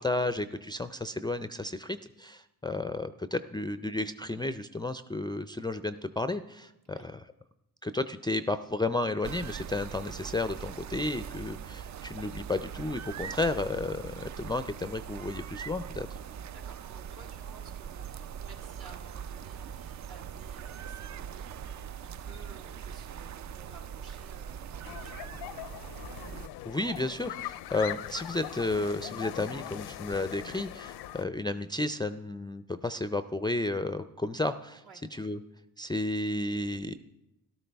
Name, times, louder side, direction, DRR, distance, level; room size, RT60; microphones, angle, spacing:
voice 1, 0.0-7.2 7.8-16.2 26.6-34.8 35.1-35.4 35.8-37.0, left 2 dB, 10° left, 9 dB, 0.4 m, -32 dB
sound 1, 9.2-26.5, right 8 dB, 50° right, 0.4 m, -41 dB
voice 2, 16.5-25.2 34.8-35.0, right 4 dB, 65° right, 1 dB, 1.9 m, -55 dB
sound 2, 24.8-31.2, left 12 dB, 75° left, 0.5 m, -41 dB
13.5 x 12.5 x 3.4 m, 0.91 s
cardioid pair, 70°, 39 cm